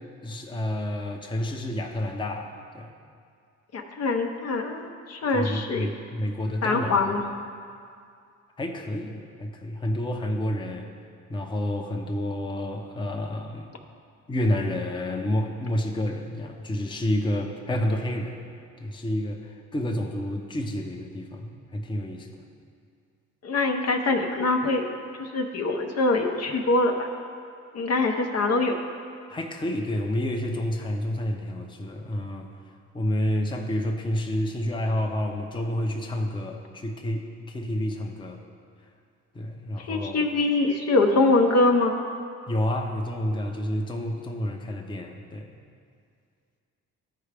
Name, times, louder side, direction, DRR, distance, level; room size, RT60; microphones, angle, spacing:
voice 1, 0.2-2.9 5.3-7.0 8.6-10.9 11.3-13.7 14.3-18.4 18.8-22.4 29.3-32.5 32.9-38.4 39.3-40.2 42.5-45.6, left 1 dB, 15° left, 2 dB, 0.7 m, -29 dB
voice 2, 3.7-5.9 6.6-7.2 23.4-24.9 25.2-27.1 27.7-28.7 39.8-41.9, left 2 dB, 55° left, 3 dB, 0.8 m, -23 dB
13.0 x 4.8 x 3.4 m, 2.3 s
cardioid pair, 90°, 30 cm